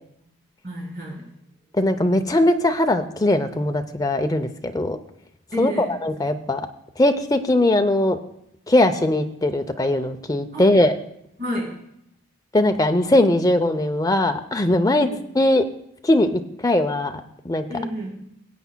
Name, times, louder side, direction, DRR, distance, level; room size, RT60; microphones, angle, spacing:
voice 1, 0.6-1.3 5.5-5.9 10.5-10.7 11.4-11.8 15.0-15.2 17.7-18.2, equal, 40° right, -4 dB, 3.9 m, -30 dB
voice 2, 1.7-5.0 5.6-6.6 7.0-8.2 8.7-10.9 12.5-15.1 15.3-15.6 16.0-17.1 17.4-17.6, left 1 dB, 15° left, 6 dB, 0.5 m, -20 dB
23.0 x 8.2 x 2.2 m, 0.77 s
head